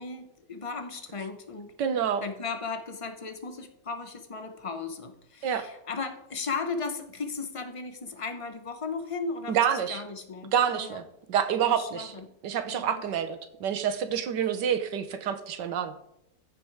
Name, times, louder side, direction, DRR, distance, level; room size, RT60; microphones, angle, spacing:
voice 1, 0.0-1.7 2.2-11.0 11.6-12.2 12.7-13.0, left 4 dB, 35° left, 7 dB, 0.5 m, -36 dB
voice 2, 1.8-2.2 5.4-5.6 9.5-10.0 10.5-11.0 11.3-12.1 12.4-15.9, right 8 dB, 85° right, 9 dB, 1.6 m, -27 dB
14.5 x 5.0 x 4.7 m, 0.79 s
omnidirectional pair, 1.8 m